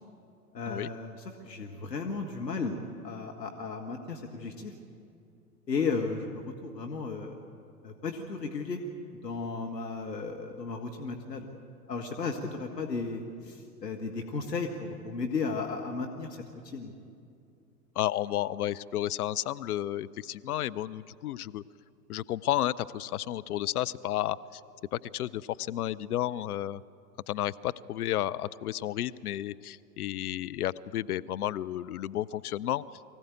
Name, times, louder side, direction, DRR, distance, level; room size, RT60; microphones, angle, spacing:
voice 1, 0.5-1.2 1.4-2.8 3.0-4.7 5.7-7.4 7.8-8.8 9.2-11.5 11.9-16.9, left 4 dB, 90° left, 2 dB, 1.8 m, -34 dB
voice 2, 18.0-21.6 22.1-24.6 24.9-26.8 27.3-32.8, left 13 dB, 70° left, 16 dB, 0.7 m, -32 dB
24.0 x 15.5 x 9.1 m, 2.5 s
hypercardioid pair, 100°, 48 cm